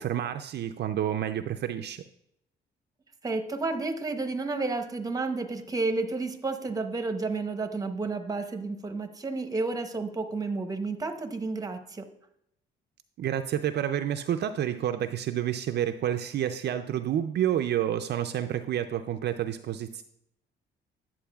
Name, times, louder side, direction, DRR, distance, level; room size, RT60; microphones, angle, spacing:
voice 1, 0.0-2.0 13.2-20.0, right 10 dB, 55° right, 7 dB, 0.4 m, -29 dB
voice 2, 3.2-12.1, right 3 dB, 20° right, 8 dB, 0.8 m, -31 dB
10.0 x 7.3 x 2.3 m, 0.78 s
cardioid pair, 90°, 20 cm